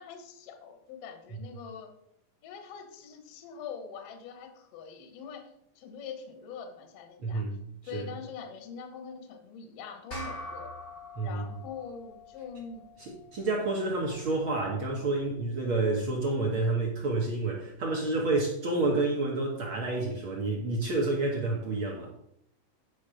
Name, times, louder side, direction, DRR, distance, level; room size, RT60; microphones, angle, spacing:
voice 1, 0.0-1.9 2.4-5.5 5.8-7.4 7.8-10.7 11.2-12.9, left 6 dB, 60° left, 5 dB, 1.7 m, -43 dB
voice 2, 7.2-7.6 7.9-8.1 11.2-11.4 13.0-22.1, right 2 dB, 60° right, -1 dB, 1.4 m, -29 dB
sound 1, 10.1-14.9, left 1 dB, 30° left, 1.0 m, -45 dB
9.3 x 5.2 x 5.0 m, 0.74 s
omnidirectional pair, 3.9 m